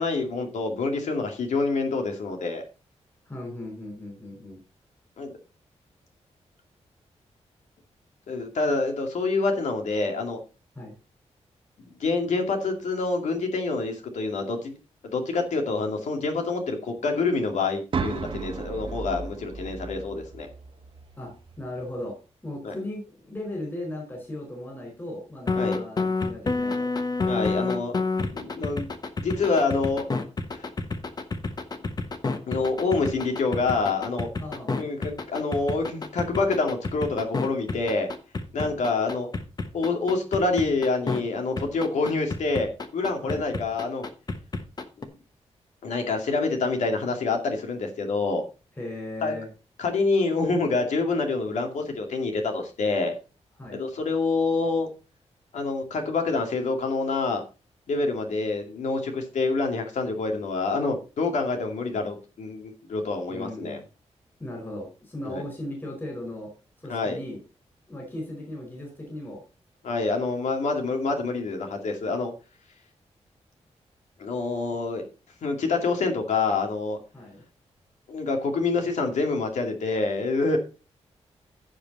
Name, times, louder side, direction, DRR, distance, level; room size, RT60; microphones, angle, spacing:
voice 1, 0.0-2.6 5.2-5.3 8.3-10.4 11.8-14.8 15.0-20.5 22.6-22.7 25.6-25.8 27.3-27.9 28.3-28.9 29.2-30.1 30.5-30.7 32.5-34.3 34.8-38.1 38.5-39.3 39.7-44.1 45.0-45.1 45.8-48.4 49.2-49.3 49.8-53.1 53.7-54.9 55.5-57.4 57.9-63.8 65.3-65.5 66.9-67.2 69.8-72.3 74.2-75.1 75.4-77.0 78.1-80.6, left 3 dB, 85° left, 3 dB, 2.4 m, -27 dB
voice 2, 3.3-4.6 10.7-10.9 21.2-22.2 22.4-26.9 34.4-34.7 38.6-38.7 43.2-43.4 48.8-49.5 53.6-53.8 63.3-63.8 64.4-66.5 66.8-67.4 67.9-69.4 77.1-77.4, left 1 dB, 20° left, 0 dB, 4.7 m, -37 dB
sound 1, 17.9-21.9, right 4 dB, 45° right, 1.1 m, -35 dB
sound 2, 25.5-41.2 41.6-45.0, left 3 dB, 35° left, 1.1 m, -29 dB
15.0 x 5.2 x 4.1 m, 0.32 s
wide cardioid pair, 150°, 12 cm